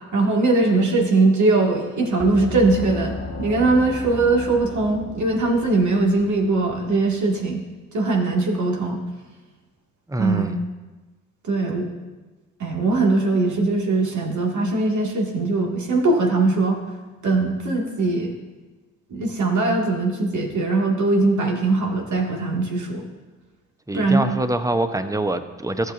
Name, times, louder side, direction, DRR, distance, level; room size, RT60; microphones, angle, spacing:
voice 1, 0.1-7.6 7.9-9.0 10.2-10.5 11.4-11.9 12.6-16.8 17.2-18.3 19.1-23.1 23.9-24.2, right 3 dB, 55° right, 0 dB, 2.1 m, -21 dB
sound 1, 2.0-6.3, equal, 75° right, 2.8 m, -44 dB
Gong, 2.2-7.4, left 3 dB, 40° left, 1.2 m, -35 dB
voice 2, 10.1-10.6 23.9-25.9, right 1 dB, 10° right, 10 dB, 0.8 m, -24 dB
14.5 x 6.5 x 2.6 m, 1.2 s
hypercardioid pair, 45°, 35 cm